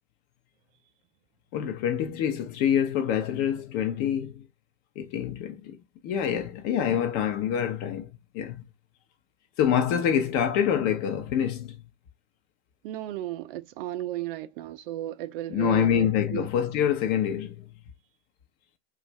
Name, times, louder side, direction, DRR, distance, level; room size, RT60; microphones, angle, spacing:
voice 1, 1.5-4.4 5.0-5.8 6.0-8.6 9.6-11.8 15.5-17.7, left 9 dB, 45° left, 0.7 m, -26 dB
voice 2, 12.8-16.5, right 14 dB, 55° right, 0.4 m, -34 dB
2.5 x 2.4 x 3.0 m
hypercardioid pair, 105°, 34 cm